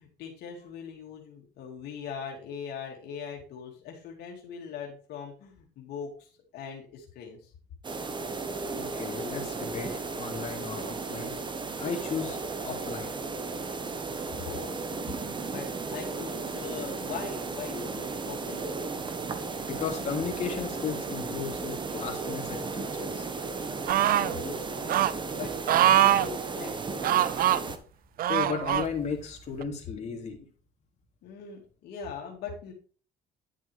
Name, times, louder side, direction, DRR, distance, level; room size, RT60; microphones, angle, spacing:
voice 1, 0.0-7.5 14.4-14.8 15.4-18.6 24.0-27.4 31.2-32.7, left 6 dB, 75° left, 0 dB, 2.4 m, -41 dB
sound 1, 7.8-27.8, right 4 dB, 25° right, 1.3 m, -35 dB
voice 2, 8.7-11.3 11.8-13.2 19.3-23.3 28.3-30.4, left 6 dB, 40° left, 0 dB, 3.1 m, -35 dB
sound 2, 23.9-24.3 24.9-25.1 25.7-26.3 27.0-27.6 28.2-28.9 29.6-29.7, right 12 dB, 60° right, 0.6 m, -23 dB
10.5 x 7.3 x 3.4 m, 0.39 s
cardioid pair, 110°, 17 cm